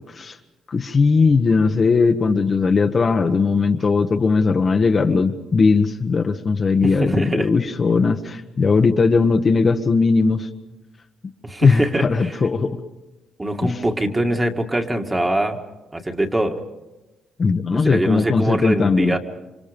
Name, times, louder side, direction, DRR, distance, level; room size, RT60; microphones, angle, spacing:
voice 1, 0.7-10.5 11.6-12.7 13.6-13.7 17.4-19.2, left 4 dB, 40° left, 5 dB, 1.2 m, -18 dB
voice 2, 6.8-7.5 11.4-12.4 13.4-15.6 15.9-16.6 17.7-19.2, right 1 dB, 15° right, 4 dB, 2.0 m, -23 dB
28.0 x 25.0 x 5.2 m, 1.1 s
cardioid pair, 90°, 0 cm